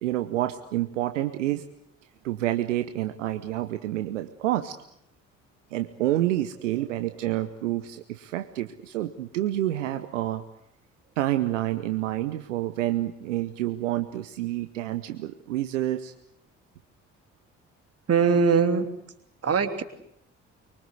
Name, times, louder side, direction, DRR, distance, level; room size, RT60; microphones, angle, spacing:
voice 1, 0.0-1.6 2.2-4.8 5.7-10.4 11.2-16.1, right 14 dB, 75° right, 10 dB, 1.0 m, -28 dB
voice 2, 18.1-18.9 19.4-19.8, right 6 dB, 40° right, 8 dB, 3.1 m, -21 dB
24.5 x 24.0 x 8.1 m, 0.77 s
figure-of-eight pair, 45°, 37 cm